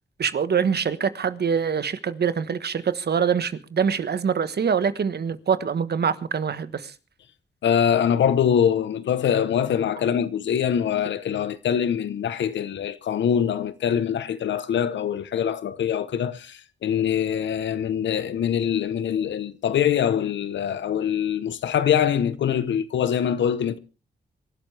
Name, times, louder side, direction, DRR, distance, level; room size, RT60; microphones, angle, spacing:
voice 1, 0.2-6.9, right 7 dB, 65° right, 1.3 m, -24 dB
voice 2, 7.6-23.8, left 8 dB, 90° left, 1.0 m, -23 dB
26.5 x 12.0 x 3.4 m
cardioid pair, 60°, 18 cm